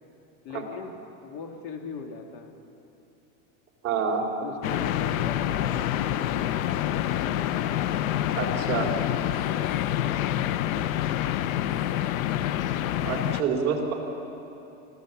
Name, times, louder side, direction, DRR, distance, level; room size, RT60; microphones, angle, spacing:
voice 1, 0.4-0.9 1.2-2.6 4.4-6.3 9.5-10.8, left 5 dB, 40° left, 3 dB, 2.2 m, -40 dB
voice 2, 3.8-4.2 8.3-8.9 11.6-11.7 13.0-13.9, right 6 dB, 30° right, -1 dB, 3.5 m, -27 dB
sound 1, 4.6-13.4, left 12 dB, 70° left, 0.9 m, -27 dB
26.0 x 15.5 x 7.2 m, 2.9 s
supercardioid pair, 165°, 42 cm